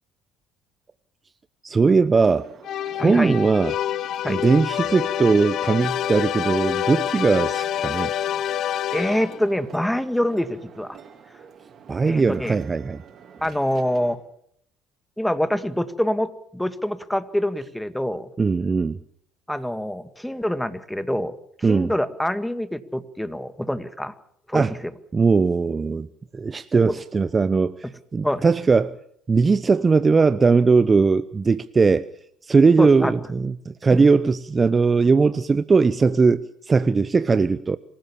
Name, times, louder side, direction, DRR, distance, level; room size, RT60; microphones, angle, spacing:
voice 1, 1.6-2.5 2.9-3.8 4.3-8.1 11.9-13.0 18.4-19.0 21.6-21.9 24.5-24.7 25.1-26.1 26.3-28.9 29.3-32.1 32.4-37.8, right 4 dB, 30° right, 0.8 m, -19 dB
sound 1, 2.2-14.2, right 7 dB, 50° right, 4.1 m, -48 dB
sound 2, 2.6-9.5, left 11 dB, 60° left, 0.9 m, -27 dB
voice 2, 3.0-3.4 4.2-4.4 8.9-11.0 12.1-12.6 13.4-14.2 15.2-18.3 19.5-21.4 21.7-24.1 24.5-24.7 26.9-27.0 27.8-27.9 28.2-28.4 32.8-33.2 33.9-34.1, equal, 5° left, 1.9 m, -25 dB
26.0 x 16.0 x 7.2 m
hypercardioid pair, 65°, 0 cm